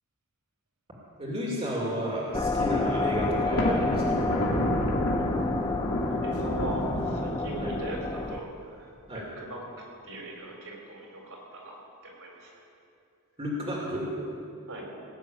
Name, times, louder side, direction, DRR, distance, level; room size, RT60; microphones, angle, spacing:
voice 1, 1.2-4.2 7.6-7.7 9.1-9.3 13.4-14.1, equal, 25° right, -4 dB, 2.6 m, -31 dB
sound 1, 2.3-8.4, left 2 dB, 15° left, 0.4 m, -30 dB
Thunder, 3.3-7.9, left 1 dB, 85° left, 2.4 m, -30 dB
voice 2, 6.2-9.6 10.0-11.8 12.0-12.5 14.7-14.8, right 1 dB, 65° right, -1 dB, 3.9 m, -39 dB
18.5 x 7.0 x 8.8 m, 2.6 s
head